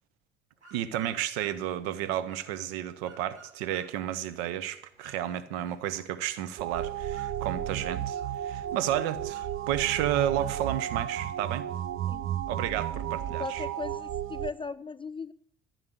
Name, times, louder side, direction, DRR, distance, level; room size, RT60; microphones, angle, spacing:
sound 1, 0.5-14.6, right 2 dB, 85° right, 2.4 m, -59 dB
voice 1, 0.7-11.7 12.5-13.6, right 11 dB, 65° right, 1.1 m, -32 dB
sound 2, 6.6-14.5, right 11 dB, 40° right, 0.7 m, -33 dB
voice 2, 13.4-15.3, left 5 dB, 15° left, 0.4 m, -38 dB
14.5 x 6.5 x 8.0 m
figure-of-eight pair, 50°, 33 cm